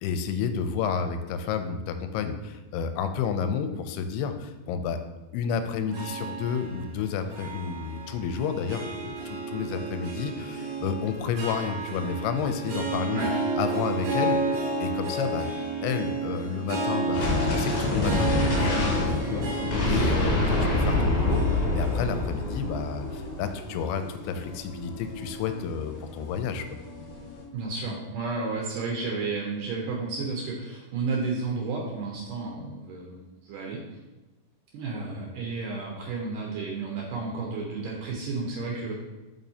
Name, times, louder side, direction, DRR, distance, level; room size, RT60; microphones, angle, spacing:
voice 1, 0.0-5.0 5.3-13.2 13.6-15.5 15.8-19.5 19.9-26.7, left 6 dB, 85° left, 8 dB, 2.6 m, -31 dB
Harp, 5.9-24.3, right 3 dB, 60° right, 2.4 m, -32 dB
sound 1, 17.1-27.4, left 2 dB, 55° left, 2.5 m, -28 dB
voice 2, 20.4-20.7 27.5-33.8 34.7-39.0, right 4 dB, 75° right, -1 dB, 2.0 m, -32 dB
7.3 x 5.5 x 2.8 m, 1.1 s
omnidirectional pair, 4.6 m